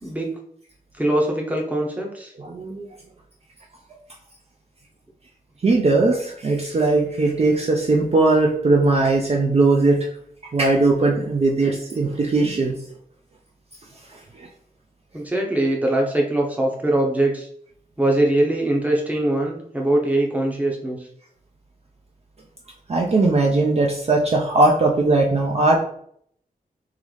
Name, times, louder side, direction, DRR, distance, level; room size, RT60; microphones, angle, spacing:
voice 1, 0.0-0.3 1.0-2.3 15.1-17.5 18.0-21.1, right 1 dB, 10° right, 0 dB, 0.7 m, -22 dB
voice 2, 2.4-2.9 5.6-10.1 10.5-12.7 22.9-25.8, right 2 dB, 40° right, 0 dB, 0.5 m, -19 dB
3.8 x 3.1 x 3.2 m, 0.65 s
wide cardioid pair, 135°, 16 cm